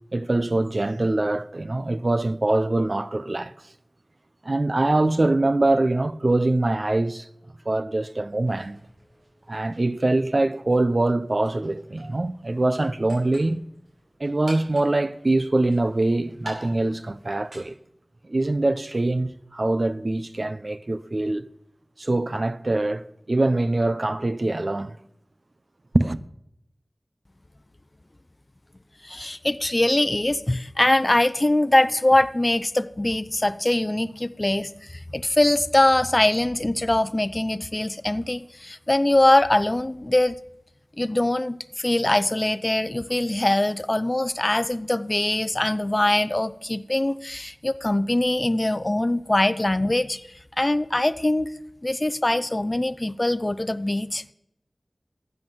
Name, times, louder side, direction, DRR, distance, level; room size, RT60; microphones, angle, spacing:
voice 1, 0.1-3.5 4.4-7.3 7.7-8.8 9.5-13.6 14.2-17.7 18.3-21.4 22.0-24.9 25.9-26.2, right 2 dB, 50° right, 0.6 m, -23 dB
sound 1, 8.5-17.6, right 1 dB, 80° right, 5.3 m, -47 dB
voice 2, 29.0-34.7 35.1-40.4 41.0-50.2 50.6-51.5 51.8-54.3, left 1 dB, 30° left, 0.6 m, -22 dB
13.0 x 7.9 x 7.3 m
wide cardioid pair, 60°, 0 cm